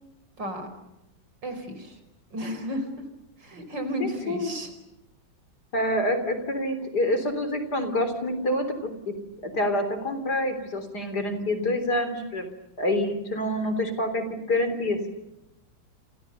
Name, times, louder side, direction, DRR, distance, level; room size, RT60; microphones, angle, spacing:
voice 1, 0.4-0.7 1.4-2.0 2.3-2.9 3.4-4.7, equal, 65° right, 8 dB, 5.5 m, -33 dB
voice 2, 4.0-4.5 5.7-9.2 9.4-12.5 12.8-15.1, left 1 dB, 55° left, 9 dB, 4.4 m, -27 dB
29.0 x 29.0 x 6.9 m, 0.91 s
omnidirectional pair, 2.1 m